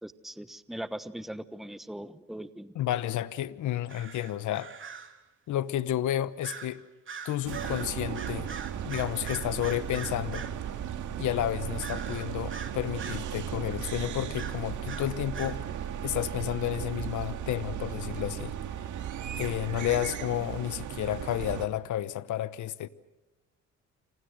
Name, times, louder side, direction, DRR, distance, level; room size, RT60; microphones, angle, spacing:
voice 1, 0.0-2.8, right 1 dB, ahead, 1.1 m, -40 dB
voice 2, 2.7-4.7 5.5-6.8 7.2-8.5 8.8-10.5 11.2-15.6 16.0-18.5 19.4-22.9, left 12 dB, 75° left, 1.0 m, -31 dB
sound 1, 3.9-5.2 6.4-6.8 7.1-10.6 11.8-13.3 14.3-15.6, right 6 dB, 40° right, 3.1 m, -42 dB
sound 2, 7.5-21.7, right 9 dB, 80° right, 2.2 m, -36 dB
29.5 x 26.5 x 6.5 m
cardioid pair, 90°, 30 cm